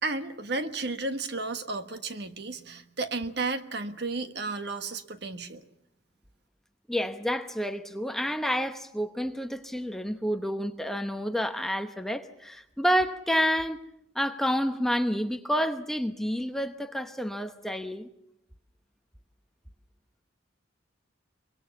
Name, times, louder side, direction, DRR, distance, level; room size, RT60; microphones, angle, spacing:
voice 1, 0.0-5.6, right 3 dB, 55° right, 1.3 m, -33 dB
voice 2, 6.9-13.8 14.1-18.1, equal, ahead, 0.9 m, -29 dB
24.0 x 23.0 x 7.1 m
head